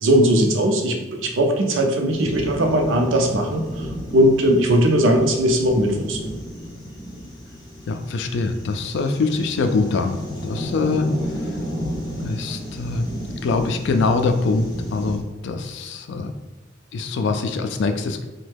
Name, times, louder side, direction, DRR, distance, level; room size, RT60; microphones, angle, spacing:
voice 1, 0.0-6.3, right 1 dB, 80° right, 3 dB, 0.5 m, -19 dB
sound 1, 2.1-15.2, equal, 20° left, 0.8 m, -33 dB
voice 2, 7.9-11.1 11.3-11.6 12.2-13.1 13.4-16.3 16.9-18.2, left 3 dB, 65° left, 7 dB, 0.3 m, -23 dB
3.0 x 2.2 x 3.3 m, 1.0 s
head